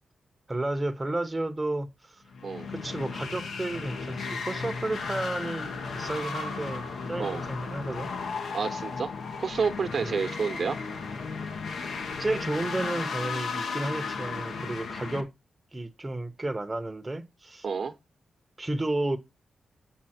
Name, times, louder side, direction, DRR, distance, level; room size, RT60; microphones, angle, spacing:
voice 1, 0.5-2.2 2.7-8.1 10.0-10.3 12.2-15.3 15.7-17.7 18.6-19.2, right 2 dB, 20° right, 0.8 m, -32 dB
sound 1, 2.3-15.2, left 4 dB, 80° left, 1.3 m, -35 dB
voice 2, 8.5-9.1 9.4-10.8 17.6-17.9, right 5 dB, 55° right, 0.9 m, -29 dB
7.6 x 5.5 x 4.3 m
cardioid pair, 95°, 0 cm